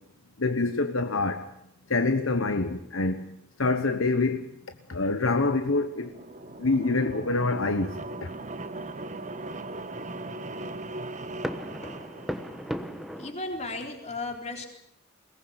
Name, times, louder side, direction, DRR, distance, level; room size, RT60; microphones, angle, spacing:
voice 1, 0.4-1.5 1.9-3.2 3.6-4.5 4.9-6.1 6.6-8.3, left 3 dB, 70° left, 1.2 m, -26 dB
sound 1, 4.9-5.8 6.0-6.2 6.8-7.4 7.9-13.3, equal, ahead, 1.1 m, -39 dB
sound 2, 5.7-13.5, right 2 dB, 35° right, 1.2 m, -39 dB
voice 2, 13.2-14.7, left 2 dB, 30° left, 3.8 m, -35 dB
22.0 x 19.0 x 8.1 m
head